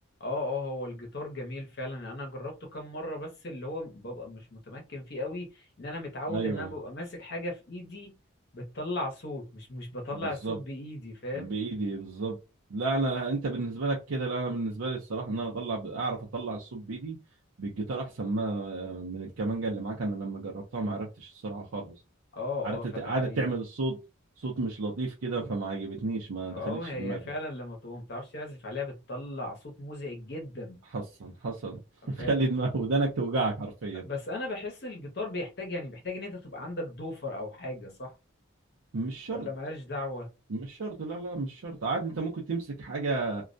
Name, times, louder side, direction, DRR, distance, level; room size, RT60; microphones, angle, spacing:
voice 1, 0.2-8.2 8.5-11.5 22.3-23.5 26.5-30.8 32.2-32.4 34.0-38.1 39.3-40.3, left 2 dB, 50° left, 0.8 m, -37 dB
voice 2, 6.3-6.7 10.2-10.6 11.3-12.4 12.7-17.2 17.6-21.9 22.6-24.0 24.4-27.2 30.9-31.8 32.1-34.0 38.9-39.5 40.5-43.4, right 3 dB, 90° right, 0.6 m, -32 dB
2.3 x 2.1 x 2.5 m
head